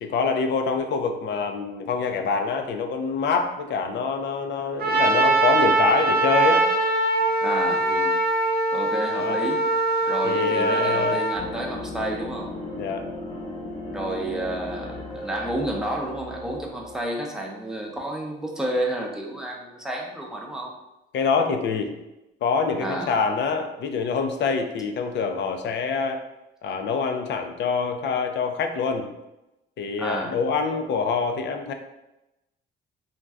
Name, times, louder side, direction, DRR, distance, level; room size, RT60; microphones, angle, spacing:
voice 1, 0.0-6.7 7.8-8.1 9.1-9.4 10.2-11.2 12.8-13.1 21.1-21.9 22.4-26.2 26.6-29.1 29.8-31.7, left 5 dB, 65° left, 5 dB, 0.4 m, -25 dB
Trumpet, 4.8-11.4, right 2 dB, 55° right, 0.6 m, -22 dB
voice 2, 7.4-7.9 8.7-9.7 10.1-12.5 13.9-20.7 22.8-23.1 30.0-30.4, right 1 dB, 5° right, -1 dB, 0.6 m, -30 dB
sound 1, 11.4-17.1, left 2 dB, 25° left, 0.8 m, -36 dB
2.6 x 2.2 x 3.3 m, 0.95 s
cardioid pair, 90°, 20 cm